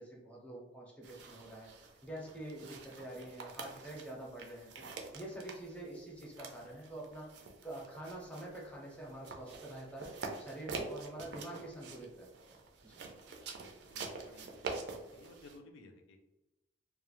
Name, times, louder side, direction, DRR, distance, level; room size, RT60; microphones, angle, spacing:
voice 1, 0.0-1.7 2.0-4.9 5.1-7.3 7.6-10.1 10.4-13.0, right 1 dB, 5° left, -3 dB, 0.5 m, -46 dB
sound 1, 1.0-15.6, right 4 dB, 65° right, 0.4 m, -47 dB
voice 2, 13.9-16.2, left 2 dB, 90° left, 4 dB, 0.4 m, -58 dB
2.2 x 2.0 x 3.0 m, 1.0 s
head